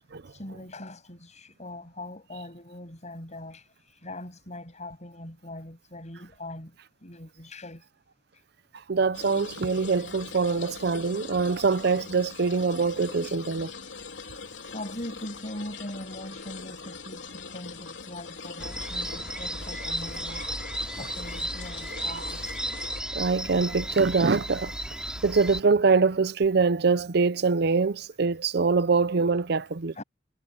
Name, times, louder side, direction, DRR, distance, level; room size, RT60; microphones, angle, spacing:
voice 1, 0.3-6.8 7.0-7.9 8.3-8.4 13.2-13.4 14.2-14.4 14.7-20.7 21.0-22.6 29.9-30.0, left 1 dB, 40° left, 7.5 m, -41 dB
voice 2, 8.9-13.7 22.0-22.2 23.1-24.7 25.2-29.9, right 4 dB, 60° right, 0.6 m, -24 dB
sound 1, 9.1-23.0, left 5 dB, 90° left, 3.2 m, -42 dB
sound 2, 18.6-25.6, right 1 dB, 5° right, 4.7 m, -34 dB
head